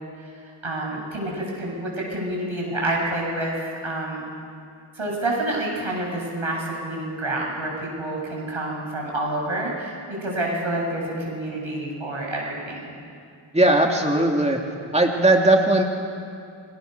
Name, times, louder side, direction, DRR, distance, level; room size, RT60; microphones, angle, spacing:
voice 1, 0.3-4.2 4.9-9.9 10.2-12.9, right 1 dB, 75° right, -2 dB, 7.8 m, -28 dB
voice 2, 13.5-14.6 14.9-15.8, right 1 dB, 15° right, 1 dB, 2.6 m, -18 dB
30.0 x 26.0 x 6.8 m, 2.4 s
wide cardioid pair, 55°, 48 cm